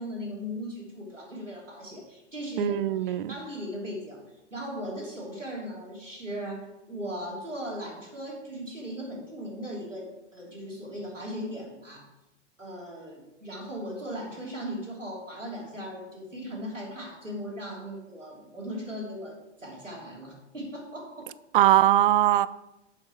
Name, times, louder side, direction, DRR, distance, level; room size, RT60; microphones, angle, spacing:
voice 1, 0.0-4.2 4.5-10.1 10.3-12.1 12.6-21.3, equal, 90° right, 2.9 m, -38 dB
voice 2, 2.6-3.3 21.5-22.5, right 13 dB, 45° right, 0.4 m, -21 dB
7.5 x 7.2 x 4.6 m
figure-of-eight pair, 95°, 37 cm